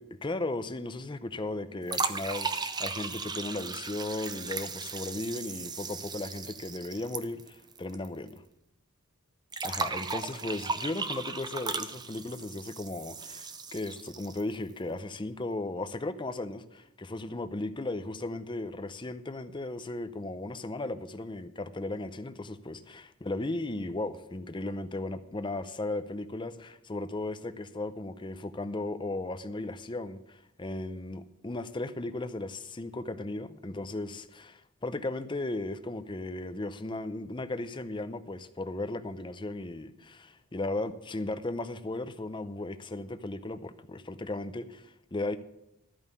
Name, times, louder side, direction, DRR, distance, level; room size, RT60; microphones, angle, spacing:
voice 1, 0.2-8.4 9.6-45.4, left 2 dB, 20° left, 0.6 m, -36 dB
sound 1, 1.9-8.1 8.3-8.4 9.5-14.6, right 4 dB, 20° right, 0.6 m, -36 dB
12.5 x 5.5 x 8.1 m
head